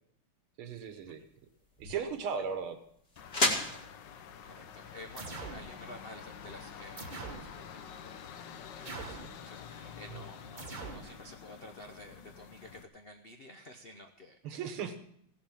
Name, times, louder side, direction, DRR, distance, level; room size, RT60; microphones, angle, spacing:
voice 1, 0.6-1.2 1.8-2.8 10.1-10.2 14.4-15.0, right 6 dB, 80° right, 9 dB, 2.1 m, -37 dB
sound 1, 0.7-6.6, left 2 dB, 30° left, 2.0 m, -37 dB
sound 2, 3.2-12.8, left 7 dB, 65° left, 1.4 m, -48 dB
voice 2, 4.4-7.1 7.4-8.2 8.7-14.4, left 1 dB, 80° left, 5 dB, 0.5 m, -51 dB
sound 3, 5.2-5.7 7.0-7.5 8.8-9.4 10.6-11.1, right 4 dB, 35° right, 0.8 m, -42 dB
16.5 x 7.5 x 7.2 m, 0.73 s
omnidirectional pair, 2.3 m